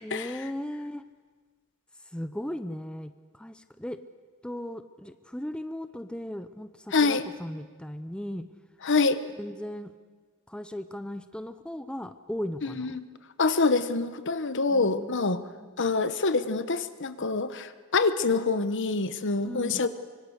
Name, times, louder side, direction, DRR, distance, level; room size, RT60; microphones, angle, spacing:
voice 1, 0.0-1.0 2.0-4.0 4.4-8.5 9.4-9.9 10.5-12.9 14.7-15.7 19.4-19.9, left 1 dB, 5° left, 10 dB, 0.6 m, -37 dB
voice 2, 6.9-7.2 8.8-9.2 12.6-13.0 13.4-15.4 15.8-19.9, left 3 dB, 60° left, 12 dB, 1.2 m, -26 dB
25.0 x 23.5 x 6.5 m, 1.5 s
head